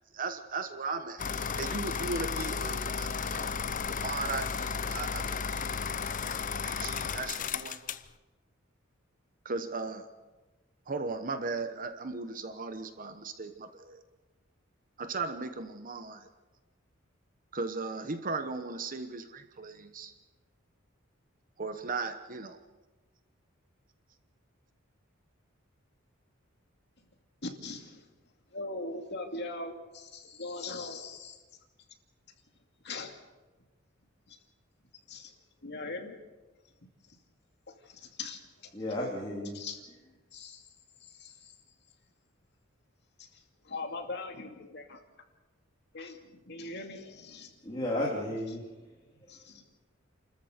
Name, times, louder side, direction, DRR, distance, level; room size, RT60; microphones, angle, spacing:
voice 1, 0.1-3.6 3.9-5.7 6.6-7.8 9.4-10.1 10.9-14.0 15.0-16.3 17.5-20.1 21.6-22.6, right 3 dB, 40° right, 8 dB, 1.0 m, -37 dB
sound 1, 1.2-8.1, left 6 dB, 40° left, 0.7 m, -34 dB
voice 2, 27.4-28.1 28.5-31.4 32.8-33.2 34.3-34.4 35.1-35.3 35.6-36.1 37.1-37.2 37.7-38.7 39.5-39.8 40.3-40.6 41.0-41.5 43.2-45.0 45.9-47.5 49.3-49.6, left 3 dB, 55° left, 3 dB, 2.5 m, -41 dB
voice 3, 38.7-39.6 47.6-48.6, left 1 dB, 25° left, -5 dB, 3.2 m, -33 dB
29.0 x 14.0 x 6.7 m, 1.2 s
head